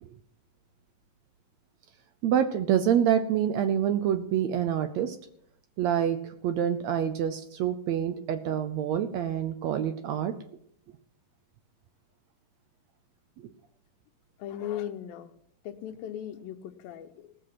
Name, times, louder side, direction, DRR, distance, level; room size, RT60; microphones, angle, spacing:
voice 1, 2.2-5.2 5.8-10.3 13.4-13.5, right 9 dB, 85° right, 9 dB, 1.5 m, -27 dB
voice 2, 14.4-15.3 15.6-17.4, left 10 dB, 85° left, 8 dB, 2.7 m, -38 dB
19.5 x 6.8 x 5.8 m, 0.68 s
omnidirectional pair, 4.1 m